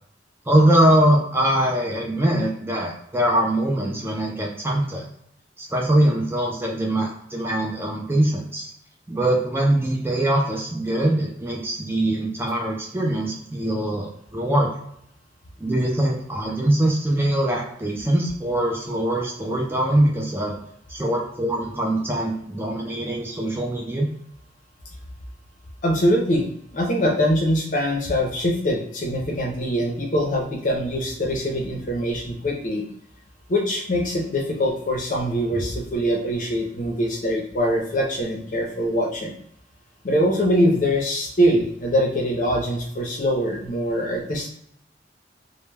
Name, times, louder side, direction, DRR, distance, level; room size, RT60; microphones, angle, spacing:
voice 1, 0.5-5.1 5.6-8.6 9.1-14.7 15.6-20.6 20.9-24.1, right 1 dB, 10° right, -1 dB, 0.4 m, -22 dB
voice 2, 25.8-26.4 26.7-32.8 33.5-39.3 40.0-44.5, equal, 45° left, 1 dB, 0.6 m, -23 dB
2.1 x 2.1 x 3.2 m, 0.71 s
head